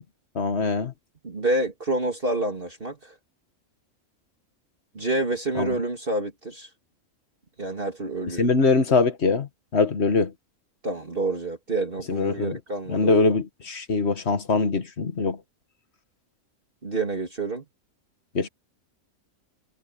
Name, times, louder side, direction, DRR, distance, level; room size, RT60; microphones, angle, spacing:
voice 1, 0.3-0.9 5.5-5.8 8.4-10.3 12.1-12.6 12.9-15.4 18.3-18.5, left 4 dB, 55° left, 1.7 m, -23 dB
voice 2, 1.2-3.2 4.9-6.7 7.6-8.4 10.8-13.1 16.8-17.6, right 2 dB, 40° right, 2.9 m, -28 dB
omnidirectional pair, 1.4 m